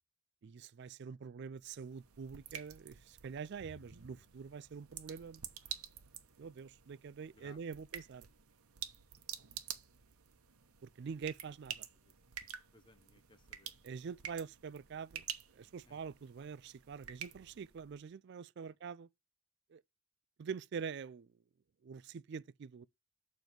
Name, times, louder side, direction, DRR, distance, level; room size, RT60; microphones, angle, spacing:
voice 1, 0.4-5.4 6.4-8.3 10.8-11.9 13.8-15.2 15.5-19.1 19.7-19.8 20.4-21.3 21.8-22.8, right 6 dB, 50° right, 0.3 m, -45 dB
sound 1, 1.5-18.0, right 10 dB, 85° right, 1.0 m, -50 dB
voice 2, 7.3-7.8 12.0-12.1 12.7-13.9 15.9-16.0 18.6-18.7, left 3 dB, 20° left, 0.7 m, -64 dB
6.9 x 4.0 x 6.0 m
head